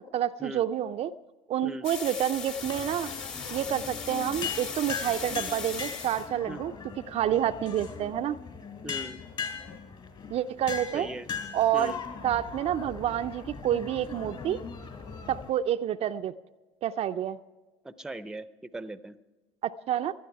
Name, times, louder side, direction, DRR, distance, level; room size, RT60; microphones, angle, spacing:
voice 1, 0.1-1.1 1.5-3.1 3.5-6.7 7.1-8.4 10.3-11.1 11.5-11.9 12.2-14.6 15.3-16.3 16.8-17.4 19.6-20.1, right 10 dB, 50° right, 8 dB, 0.4 m, -28 dB
sound 1, 1.8-6.3, left 5 dB, 60° left, 2.3 m, -38 dB
sound 2, 2.6-15.5, left 6 dB, 40° left, 3.3 m, -39 dB
voice 2, 8.8-9.2 10.9-11.3 11.7-12.0 17.8-19.1, right 1 dB, 5° right, 14 dB, 0.6 m, -39 dB
17.5 x 12.0 x 4.7 m, 1.2 s
hypercardioid pair, 80°, 14 cm